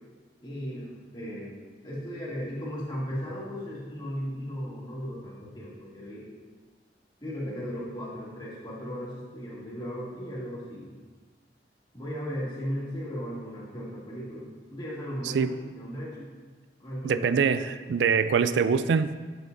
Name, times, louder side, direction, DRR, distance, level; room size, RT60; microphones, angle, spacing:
voice 1, 0.4-1.6 1.8-6.3 7.2-10.9 11.9-16.3 16.8-17.2 17.6-17.7, equal, 25° left, -6 dB, 1.7 m, -36 dB
voice 2, 17.0-19.1, right 6 dB, 70° right, 13 dB, 0.3 m, -24 dB
7.9 x 7.1 x 2.6 m, 1.4 s
head